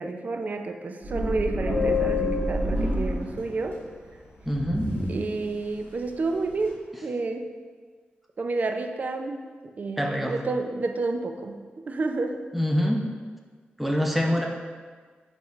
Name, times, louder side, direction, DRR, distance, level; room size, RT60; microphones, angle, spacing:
voice 1, 0.0-3.8 5.1-7.5 8.4-12.4, right 3 dB, 45° right, 5 dB, 0.5 m, -30 dB
sound 1, 1.0-3.5 4.4-5.4, equal, 70° right, 1.4 m, -29 dB
Subway metro underground, 1.7-3.8 4.1-4.2 4.5-4.7 5.0-5.4 5.7-6.7, left 7 dB, 65° left, 1.6 m, -30 dB
voice 2, 4.5-4.9 10.0-10.3 12.5-13.0 13.8-14.5, equal, ahead, 0 dB, 0.7 m, -24 dB
8.5 x 3.6 x 3.1 m, 1.5 s
wide cardioid pair, 105°, 4 cm